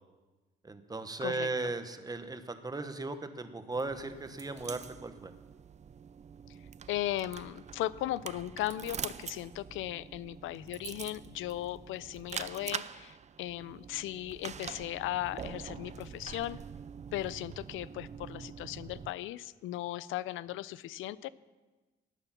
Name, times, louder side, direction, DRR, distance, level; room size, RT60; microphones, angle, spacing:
voice 1, 0.6-5.3, right 3 dB, 20° right, 9 dB, 1.2 m, -37 dB
voice 2, 1.2-1.7 6.5-6.6 6.9-16.6 17.1-21.3, left 14 dB, 85° left, 18 dB, 0.5 m, -37 dB
sound 1, 3.7-19.1, right 7 dB, 35° right, 0.5 m, -45 dB
19.0 x 6.9 x 5.8 m, 1.2 s
cardioid pair, 90°, 20 cm